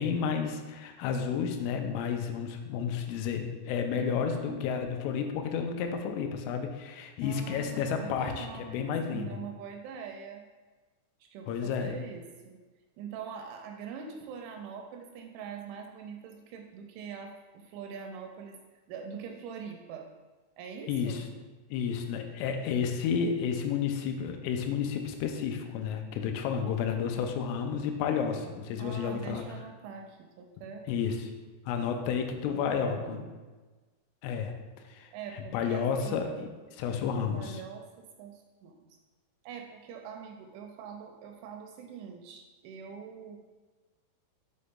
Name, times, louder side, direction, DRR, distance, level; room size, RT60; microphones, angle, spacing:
voice 1, 0.0-9.4 11.5-11.9 20.9-21.3 21.7-29.5 30.9-31.3 31.7-33.2 34.2-34.5 34.8-37.6, left 7 dB, 90° left, 5 dB, 3.2 m, -31 dB
voice 2, 3.9-4.6 7.2-10.4 11.2-12.6 13.0-18.6 18.9-20.1 20.6-21.2 28.8-30.8 32.4-33.3 35.1-36.3 37.3-37.9 38.2-38.8 39.4-43.5, right 6 dB, 85° right, 4 dB, 2.7 m, -43 dB
7.6 x 4.0 x 3.6 m, 1.3 s
omnidirectional pair, 5.6 m